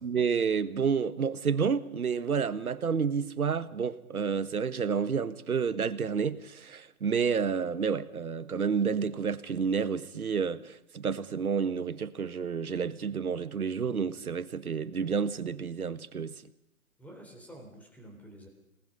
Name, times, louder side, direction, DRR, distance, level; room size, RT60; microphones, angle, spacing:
voice 1, 0.0-16.3, right 6 dB, 80° right, 1.5 m, -30 dB
voice 2, 17.0-18.5, right 1 dB, 5° left, 3.6 m, -49 dB
28.5 x 19.5 x 5.4 m
figure-of-eight pair, 140°, 43 cm